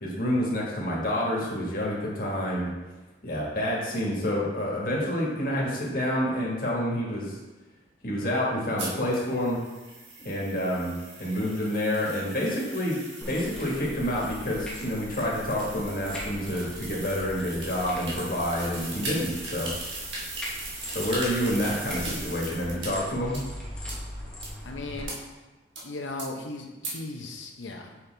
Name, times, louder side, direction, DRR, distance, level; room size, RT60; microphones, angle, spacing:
voice 1, 0.0-2.7 3.2-7.4 8.0-9.6 10.2-13.0 13.3-19.7 20.9-23.4, equal, 50° left, -4 dB, 1.6 m, -28 dB
sound 1, 8.8-22.9 23.3-23.4 23.9-24.0 24.4-24.5 25.1-25.2 25.8-25.9 26.2-26.3 26.8-26.9, right 2 dB, 75° right, 1.5 m, -39 dB
sound 2, 13.2-25.0, equal, 5° left, 1.0 m, -41 dB
voice 2, 24.6-25.1 25.8-28.0, left 2 dB, 85° left, 2 dB, 0.8 m, -37 dB
5.9 x 5.5 x 3.4 m, 1.1 s
head